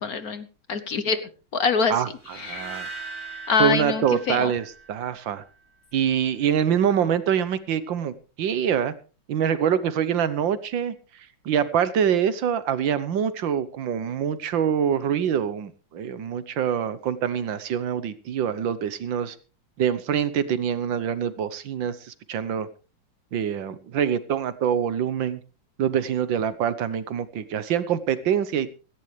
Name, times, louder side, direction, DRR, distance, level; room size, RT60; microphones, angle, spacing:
voice 1, 0.0-1.9 2.4-2.8 3.5-4.5, left 5 dB, 55° left, 12 dB, 1.3 m, -25 dB
voice 2, 1.9-2.9 3.6-5.4 5.9-8.9 9.3-10.9 11.4-19.3 19.8-22.7 23.3-25.4 25.8-28.7, right 8 dB, 70° right, 14 dB, 1.7 m, -25 dB
sound 1, 2.2-5.4, right 4 dB, 15° right, 5.8 m, -40 dB
17.0 x 15.0 x 3.3 m, 0.35 s
omnidirectional pair, 2.2 m